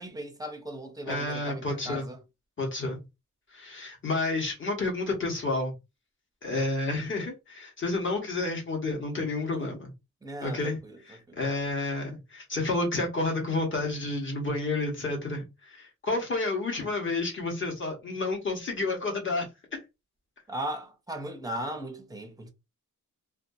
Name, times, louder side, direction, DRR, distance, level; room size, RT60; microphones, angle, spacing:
voice 1, 0.0-2.2 9.3-9.8 10.2-11.0 11.3-11.4 20.5-22.5, right 1 dB, 10° right, 0.5 m, -38 dB
voice 2, 1.1-2.1 2.6-3.0 3.5-5.7 6.4-9.9 10.4-10.8 11.1-19.5, left 2 dB, 40° left, 1.1 m, -30 dB
2.6 x 2.3 x 2.6 m
wide cardioid pair, 145°, 31 cm